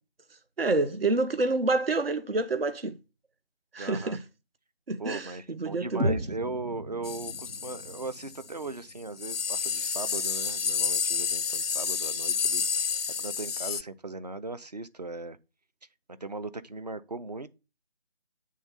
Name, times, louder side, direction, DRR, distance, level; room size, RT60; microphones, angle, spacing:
voice 1, 0.6-3.0 3.7-4.2 4.9-5.3 5.6-6.2, right 3 dB, 65° right, 0.9 m, -27 dB
voice 2, 3.8-4.2 5.0-12.9 13.2-15.4 16.1-17.5, right 3 dB, 40° right, 0.6 m, -38 dB
sound 1, 6.0-10.0, equal, 80° right, 1.8 m, -36 dB
sound 2, 7.0-8.5 8.9-9.0 9.2-13.8, left 6 dB, 70° left, 0.4 m, -30 dB
8.5 x 3.7 x 6.8 m
figure-of-eight pair, 160°, 31 cm